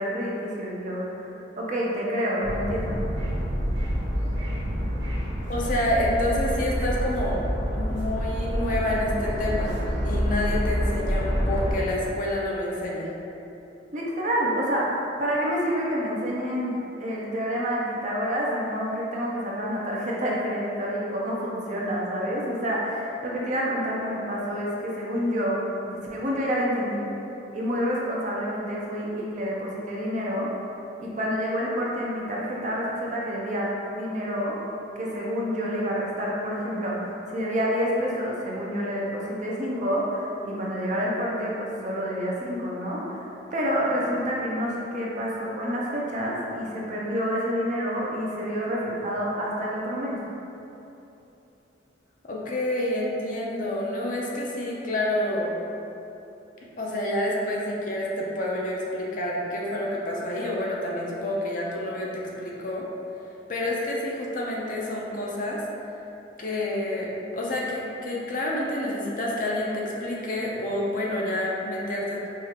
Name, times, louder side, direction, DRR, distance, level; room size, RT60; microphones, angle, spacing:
voice 1, 0.0-3.0 13.9-27.1 27.5-30.5 31.0-34.6 35.0-50.2, equal, 40° right, -4 dB, 0.6 m, -28 dB
sound 1, 2.4-11.7, equal, 65° right, 0.8 m, -27 dB
voice 2, 5.5-7.4 7.7-13.1 52.3-55.6 56.6-62.9 63.5-65.6 66.4-72.3, left 1 dB, 45° left, -3 dB, 0.5 m, -28 dB
4.8 x 2.4 x 2.8 m, 2.9 s
head